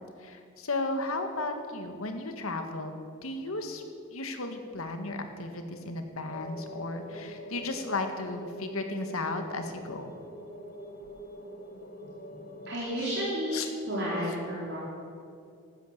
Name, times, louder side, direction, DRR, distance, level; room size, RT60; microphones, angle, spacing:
voice 1, 0.2-3.8 4.1-10.1 13.0-13.2 13.5-13.7 14.2-14.4, left 2 dB, 85° left, 6 dB, 1.9 m, -35 dB
sound 1, 6.3-12.8, equal, 45° left, 1.7 m, -44 dB
voice 2, 12.7-13.6 13.9-14.8, equal, 50° right, -7 dB, 4.0 m, -31 dB
14.5 x 13.0 x 7.5 m, 2.4 s
head